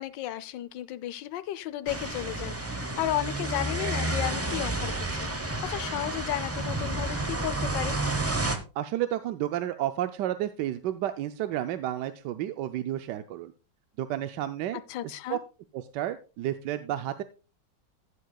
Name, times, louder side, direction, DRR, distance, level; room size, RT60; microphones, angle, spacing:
voice 1, 0.0-8.0 14.9-15.4, left 14 dB, 85° left, 15 dB, 1.3 m, -34 dB
sound 1, 1.9-8.6, right 2 dB, 20° right, 0.3 m, -30 dB
voice 2, 8.7-13.5 14.0-15.4 15.7-17.2, right 12 dB, 80° right, 10 dB, 1.2 m, -31 dB
15.0 x 7.7 x 2.3 m, 0.31 s
omnidirectional pair, 1.9 m